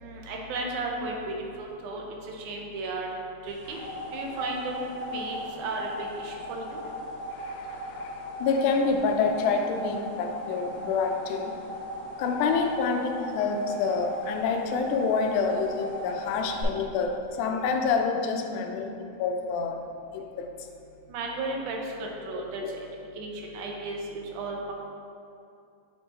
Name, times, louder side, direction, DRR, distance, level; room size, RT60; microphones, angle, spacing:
voice 1, 0.0-3.1 3.4-3.8 4.1-4.7 5.1-5.9 6.2-6.8 21.1-22.9 23.2-24.0 24.3-24.7, right 3 dB, 85° right, 0 dB, 2.2 m, -34 dB
sound 1, 3.5-16.6, equal, 50° left, 1.7 m, -38 dB
voice 2, 7.3-11.6 12.2-18.9 19.2-19.8 20.1-20.5 21.5-21.6 22.3-22.7, left 5 dB, 85° left, 5 dB, 2.0 m, -27 dB
7.0 x 3.4 x 4.2 m, 2.6 s
omnidirectional pair, 3.4 m